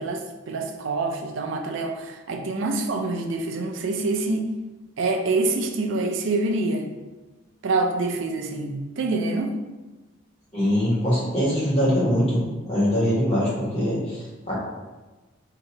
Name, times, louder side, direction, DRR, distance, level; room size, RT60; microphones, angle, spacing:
voice 1, 0.0-4.6 5.0-6.9 7.6-9.5, right 3 dB, 65° right, 3 dB, 0.4 m, -26 dB
voice 2, 10.5-14.5, equal, 30° left, -8 dB, 1.5 m, -23 dB
2.9 x 2.8 x 4.4 m, 1.2 s
head